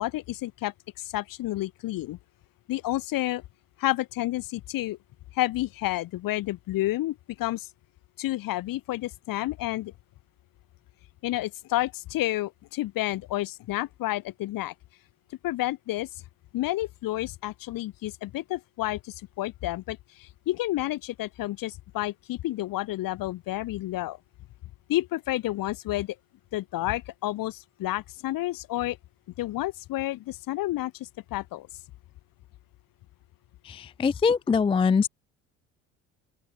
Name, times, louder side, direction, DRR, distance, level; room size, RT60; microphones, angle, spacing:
voice 1, 0.0-2.2 2.7-3.4 3.8-5.0 5.3-7.7 8.2-9.9 11.2-14.7 15.4-16.1 16.5-24.2 24.9-26.1 26.5-29.0 29.4-31.7, left 16 dB, 60° left, 3.3 m, -30 dB
voice 2, 33.7-35.1, left 5 dB, 15° left, 0.4 m, -23 dB
open air
hypercardioid pair, 60°, 39 cm